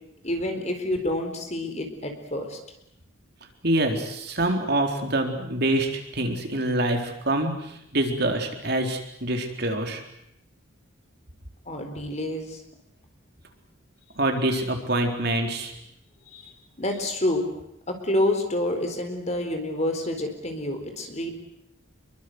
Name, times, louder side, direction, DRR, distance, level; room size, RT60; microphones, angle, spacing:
voice 1, 0.2-2.6 11.7-12.6 16.3-17.5 17.9-21.3, left 1 dB, 35° left, 5 dB, 4.2 m, -28 dB
voice 2, 3.6-10.0 14.2-15.7, right 1 dB, 50° right, 4 dB, 4.1 m, -25 dB
27.5 x 23.0 x 8.1 m, 0.78 s
head